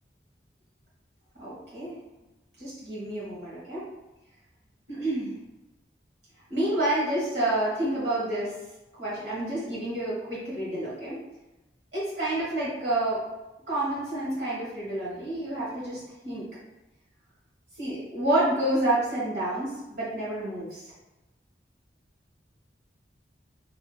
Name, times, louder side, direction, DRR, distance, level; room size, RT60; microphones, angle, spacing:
voice 1, 1.3-2.0 2.6-3.8 4.9-5.3 6.5-8.5 9.0-11.2 11.9-13.2 13.7-16.4 17.8-20.9, right 1 dB, 75° right, -8 dB, 1.4 m, -29 dB
4.5 x 2.9 x 2.3 m, 1.0 s
head